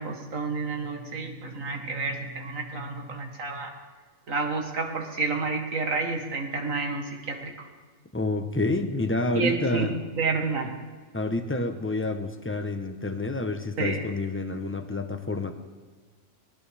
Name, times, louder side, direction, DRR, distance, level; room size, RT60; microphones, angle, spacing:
voice 1, 0.0-3.7 4.3-7.5 9.3-10.7 13.8-14.0, right 3 dB, 70° right, 3 dB, 2.1 m, -30 dB
voice 2, 8.1-9.9 11.1-15.5, left 2 dB, 10° left, 6 dB, 0.8 m, -28 dB
19.5 x 18.0 x 3.5 m, 1.4 s
omnidirectional pair, 1.4 m